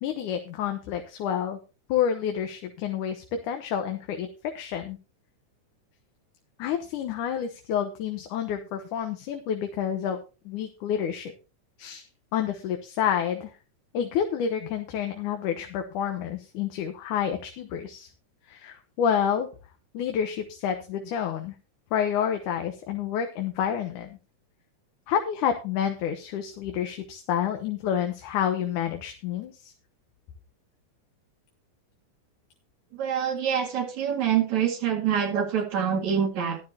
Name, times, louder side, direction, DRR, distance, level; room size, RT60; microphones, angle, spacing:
voice 1, 0.0-1.6 1.9-4.3 4.6-5.0 6.6-10.2 10.5-11.3 11.8-12.1 12.3-13.5 13.9-18.1 18.5-19.5 19.9-21.5 21.9-24.2 25.1-29.7, left 8 dB, 85° left, 5 dB, 2.6 m, -29 dB
voice 2, 32.9-36.6, right 8 dB, 70° right, 3 dB, 3.4 m, -26 dB
14.0 x 11.5 x 2.9 m, 0.31 s
omnidirectional pair, 3.4 m